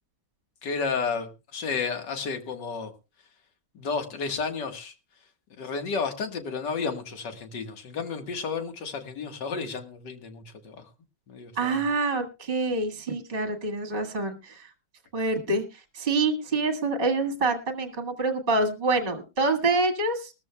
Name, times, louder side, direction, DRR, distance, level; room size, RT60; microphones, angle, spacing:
voice 1, 0.6-2.9 3.7-4.9 5.6-10.9 11.3-11.8, left 5 dB, 65° left, 6 dB, 2.1 m, -32 dB
voice 2, 11.6-14.7 15.1-20.3, right 3 dB, 30° right, 4 dB, 1.8 m, -26 dB
21.0 x 13.5 x 2.2 m, 0.29 s
omnidirectional pair, 2.1 m